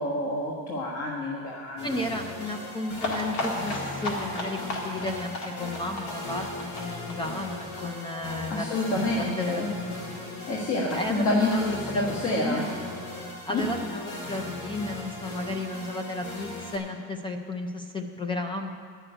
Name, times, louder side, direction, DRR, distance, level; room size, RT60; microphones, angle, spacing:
voice 1, 0.0-1.9 8.5-9.7 10.5-12.6 13.5-13.6, left 2 dB, 50° left, -3 dB, 1.5 m, -28 dB
sound 1, 1.8-16.8, left 2 dB, 85° left, 3.2 m, -38 dB
voice 2, 1.8-8.7 9.4-10.1 10.9-12.7 13.5-18.7, left 2 dB, 15° left, 4 dB, 0.4 m, -33 dB
sound 2, 3.0-8.5 8.8-8.9 9.1-9.2 9.5-9.6, left 2 dB, 70° left, 2.1 m, -34 dB
11.0 x 6.5 x 8.8 m, 2.3 s
cardioid pair, 175°, 31 cm